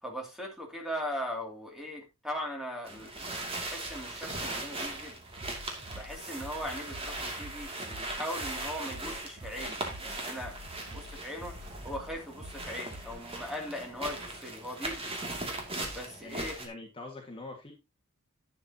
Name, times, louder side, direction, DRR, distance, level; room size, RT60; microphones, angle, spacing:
voice 1, 0.0-5.2 6.0-10.5 10.9-11.5 11.8-15.1 15.9-16.6, equal, ahead, 1 dB, 2.6 m, -39 dB
sound 1, 2.9-16.7, right 2 dB, 25° right, 2.4 m, -39 dB
sound 2, 5.4-13.2, equal, 80° right, 6.6 m, -47 dB
voice 2, 16.2-17.7, left 2 dB, 25° left, 1 dB, 1.8 m, -45 dB
11.5 x 8.7 x 2.8 m, 0.24 s
head